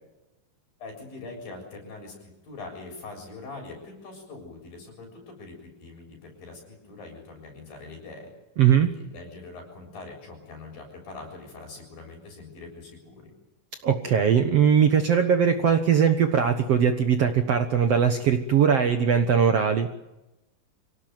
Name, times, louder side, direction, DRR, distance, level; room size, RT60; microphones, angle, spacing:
voice 1, 0.8-8.3 8.8-13.3, left 3 dB, 70° left, 2 dB, 8.9 m, -43 dB
voice 2, 8.6-8.9 13.8-19.9, right 7 dB, 60° right, 6 dB, 1.8 m, -20 dB
25.5 x 18.0 x 9.3 m, 0.96 s
omnidirectional pair, 4.2 m